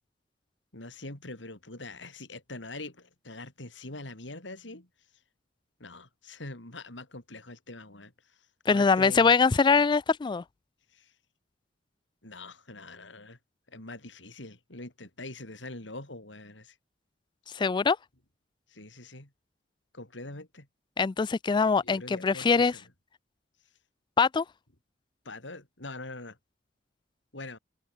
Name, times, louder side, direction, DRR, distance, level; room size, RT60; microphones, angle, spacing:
voice 1, 0.7-5.2 5.8-9.3 10.9-11.2 12.2-13.4 13.7-16.8 18.7-19.3 19.9-20.7 21.5-22.9 25.2-26.4 27.3-27.6, left 2 dB, 75° left, 4.5 m, -44 dB
voice 2, 8.7-10.4 17.5-18.0 21.0-22.7 24.2-24.4, left 5 dB, 25° left, 0.3 m, -23 dB
open air
head